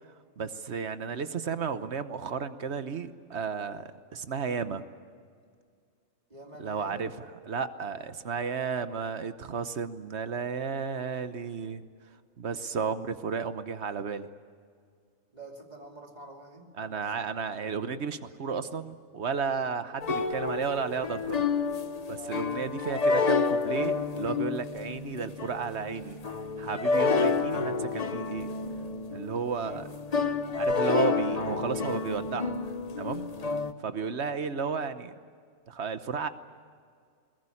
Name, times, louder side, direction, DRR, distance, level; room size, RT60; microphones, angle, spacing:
voice 1, 0.4-4.8 6.6-11.8 12.4-14.3 16.8-21.5 22.1-26.2 26.6-28.5 29.1-29.9 30.6-32.6 33.0-33.3 33.8-35.1 35.7-36.3, right 5 dB, 55° right, 11 dB, 1.2 m, -33 dB
voice 2, 6.3-7.0 15.3-17.2 22.1-22.5 33.3-33.5, right 2 dB, 30° right, 2 dB, 2.9 m, -47 dB
sound 1, 20.0-33.7, left 4 dB, 35° left, 0.8 m, -29 dB
22.0 x 19.5 x 9.9 m, 2.1 s
omnidirectional pair, 1.4 m